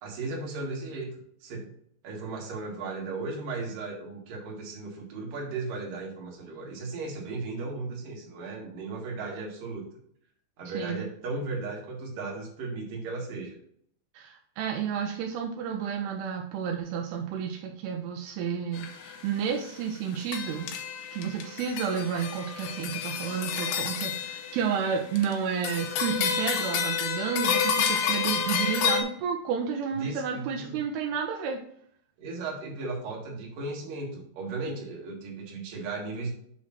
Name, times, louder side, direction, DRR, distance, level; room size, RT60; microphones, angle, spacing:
voice 1, 0.0-1.7 2.0-9.9 10.6-13.6 29.9-30.8 32.2-36.3, right 3 dB, 55° right, -2 dB, 2.8 m, -36 dB
voice 2, 10.7-11.0 14.1-20.7 21.1-31.6, right 7 dB, 85° right, 2 dB, 2.3 m, -31 dB
Ding Ding Ding, 18.7-19.2 19.7-19.8 20.2-25.3 25.6-29.0, left 7 dB, 75° left, 2.7 m, -30 dB
7.3 x 3.2 x 5.6 m, 0.66 s
omnidirectional pair, 5.3 m